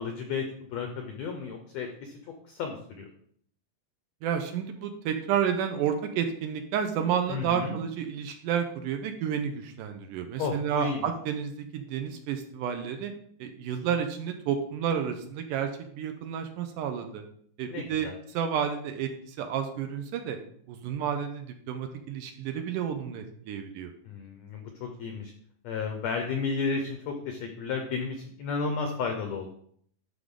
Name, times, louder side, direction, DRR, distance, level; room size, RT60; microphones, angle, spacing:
voice 1, 0.0-2.1 2.5-3.1 7.3-7.7 10.4-11.1 17.6-18.1 24.0-25.3 25.6-29.5, left 5 dB, 90° left, 4 dB, 1.5 m, -33 dB
voice 2, 4.2-13.1 13.4-17.2 17.6-20.4 20.7-23.9, right 8 dB, 80° right, 6 dB, 2.0 m, -31 dB
11.0 x 3.8 x 3.7 m, 0.63 s
omnidirectional pair, 4.0 m